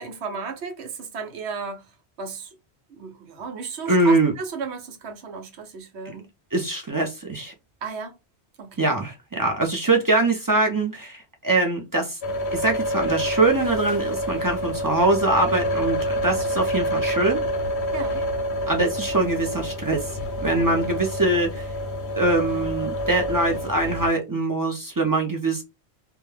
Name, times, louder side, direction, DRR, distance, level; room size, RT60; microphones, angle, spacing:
voice 1, 0.0-1.9 2.2-2.6 2.9-6.3 7.8-8.2 8.6-8.9 17.9-18.2 20.6-20.7, right 5 dB, 85° right, 1.0 m, -34 dB
voice 2, 3.9-4.3 6.5-7.5 8.8-12.2 12.5-17.4 18.7-20.1 20.4-21.6 22.2-25.6, right 2 dB, 30° right, 0.4 m, -23 dB
sound 1, 12.2-24.1, equal, 90° left, 0.9 m, -27 dB
2.3 x 2.2 x 3.1 m
omnidirectional pair, 1.1 m